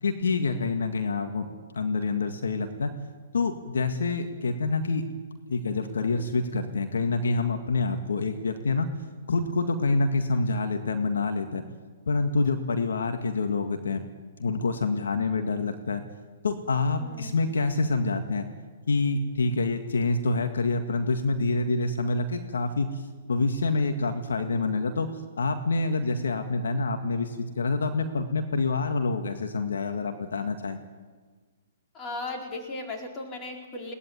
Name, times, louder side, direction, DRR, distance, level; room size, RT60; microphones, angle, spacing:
voice 1, 0.0-1.5 1.7-2.9 3.3-5.0 5.5-8.9 9.3-11.6 12.1-14.0 14.4-16.0 16.4-18.5 18.9-22.9 23.3-25.1 25.4-30.8, left 3 dB, 80° left, 6 dB, 2.0 m, -27 dB
voice 2, 17.0-17.3 31.9-33.9, left 2 dB, 25° left, 1 dB, 4.6 m, -36 dB
21.5 x 18.5 x 9.5 m, 1.4 s
hypercardioid pair, 130°, 0 cm